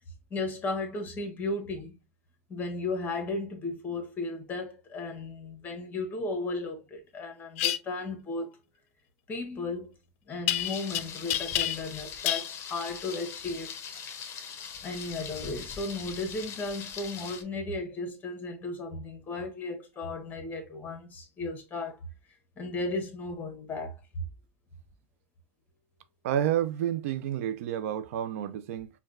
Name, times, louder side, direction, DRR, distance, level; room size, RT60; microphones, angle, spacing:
voice 1, 0.3-2.0 2.5-8.6 9.3-9.9 10.3-13.7 14.8-22.0 22.6-24.2, left 2 dB, 25° left, 1.1 m, -35 dB
sound 1, 7.6-7.8 10.5-11.0 11.3-12.0 12.3-12.5, left 13 dB, 75° left, 0.4 m, -28 dB
Thunder, 10.6-17.4, left 7 dB, 40° left, 0.7 m, -41 dB
voice 2, 26.2-28.9, right 10 dB, 85° right, 0.4 m, -30 dB
4.5 x 2.3 x 2.4 m
supercardioid pair, 135°, 7 cm